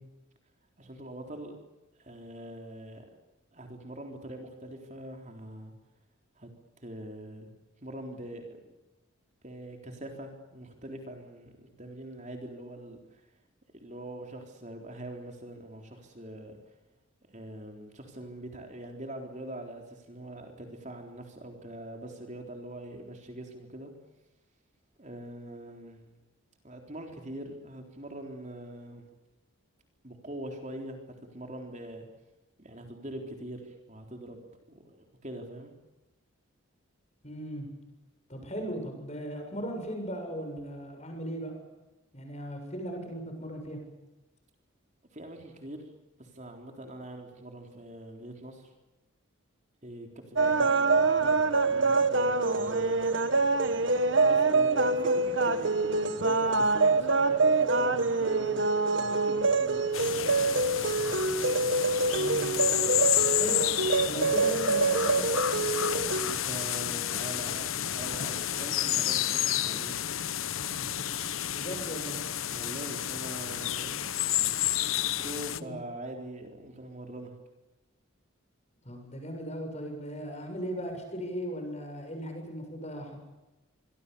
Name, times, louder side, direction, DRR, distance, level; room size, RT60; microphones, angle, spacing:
voice 1, 0.8-1.6 2.0-3.1 3.5-5.7 6.4-7.5 7.8-8.6 9.4-13.2 13.7-16.8 17.3-23.9 25.0-26.0 26.6-29.1 30.0-32.1 32.6-35.7 45.1-45.9 46.2-48.7 49.8-53.0 54.1-60.4 66.2-70.0 70.7-71.1 72.5-74.0 75.2-77.3, right 1 dB, 35° right, 3 dB, 3.8 m, -43 dB
voice 2, 37.2-37.7 38.3-41.6 42.1-43.8 62.1-62.6 63.2-63.6 64.1-65.2 71.5-72.2 73.8-74.0 75.6-75.7 78.8-83.2, equal, 30° left, 4 dB, 7.3 m, -37 dB
sound 1, 50.4-66.2, right 3 dB, 60° right, 1.7 m, -25 dB
sound 2, 59.9-75.6, left 11 dB, 75° left, 1.0 m, -30 dB
25.5 x 24.5 x 7.0 m, 1.0 s
head